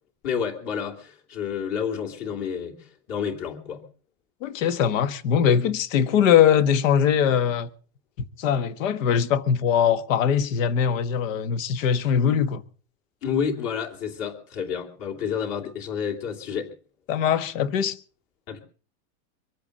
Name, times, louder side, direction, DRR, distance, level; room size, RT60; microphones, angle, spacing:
voice 1, 0.2-3.8 13.2-16.7 18.5-18.6, left 7 dB, 40° left, 3.1 m, -30 dB
voice 2, 4.4-7.7 8.4-12.6 17.1-18.0, left 8 dB, 65° left, 1.6 m, -21 dB
24.0 x 8.4 x 6.6 m
supercardioid pair, 170°, 42 cm